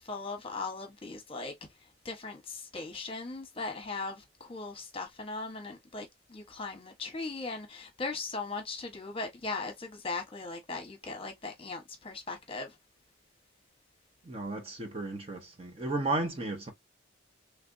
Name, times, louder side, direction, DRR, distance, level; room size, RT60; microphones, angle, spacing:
voice 1, 0.0-1.5 1.8-12.8, left 3 dB, 25° left, 1.1 m, -39 dB
voice 2, 14.2-16.7, right 2 dB, 30° right, 0.9 m, -34 dB
3.3 x 3.3 x 2.5 m
head